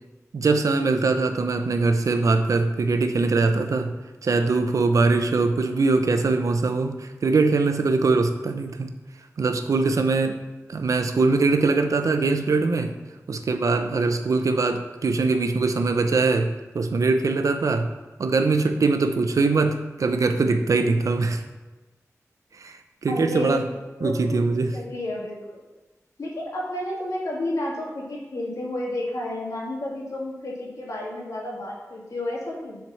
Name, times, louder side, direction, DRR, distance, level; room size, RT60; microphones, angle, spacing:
voice 1, 0.3-3.9 4.2-8.9 9.4-10.4 10.7-12.9 13.3-17.9 18.2-21.4 22.6-23.7 24.0-24.8, right 3 dB, 75° right, 7 dB, 0.7 m, -22 dB
voice 2, 23.1-23.6 24.0-25.6 26.2-32.8, left 1 dB, 75° left, -3 dB, 2.1 m, -31 dB
7.3 x 4.7 x 5.6 m, 1.2 s
wide cardioid pair, 95°, 6 cm